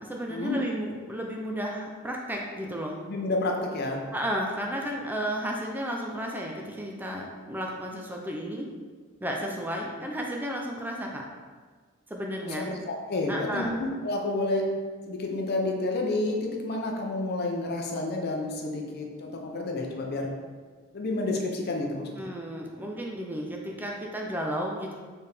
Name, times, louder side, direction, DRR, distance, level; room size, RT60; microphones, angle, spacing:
voice 1, 0.0-3.0 4.1-8.7 9.2-11.3 12.1-12.7 13.3-13.8 22.2-24.9, equal, 10° right, 0 dB, 0.4 m, -33 dB
voice 2, 3.1-4.0 12.4-14.6 15.1-20.3 20.9-22.3, left 2 dB, 50° left, 1 dB, 0.6 m, -30 dB
4.6 x 3.4 x 3.3 m, 1.5 s
head